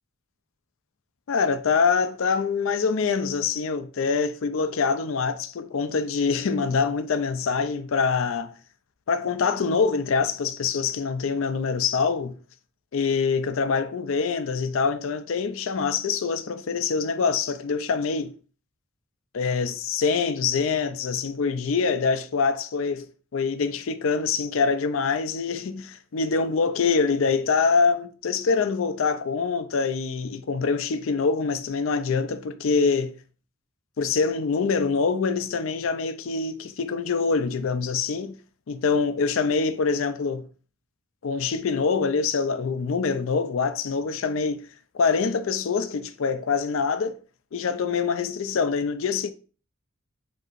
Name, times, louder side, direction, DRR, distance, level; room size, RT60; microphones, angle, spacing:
voice 1, 1.3-8.5 9.1-12.4 12.9-18.3 19.3-33.1 34.0-38.3 38.7-40.5 41.2-44.6 44.9-47.2 47.5-49.3, left 5 dB, 75° left, 0.4 m, -25 dB
7.6 x 2.8 x 2.5 m
head